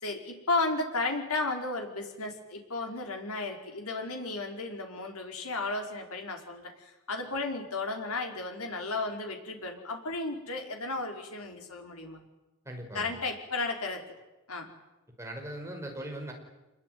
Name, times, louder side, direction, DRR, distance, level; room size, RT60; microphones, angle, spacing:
voice 1, 0.0-12.2 12.9-14.0 14.5-14.7, left 3 dB, 80° left, 3 dB, 5.2 m, -34 dB
voice 2, 12.7-13.1 15.2-16.3, right 1 dB, 15° right, 2 dB, 5.6 m, -39 dB
27.0 x 21.5 x 9.7 m, 1.0 s
head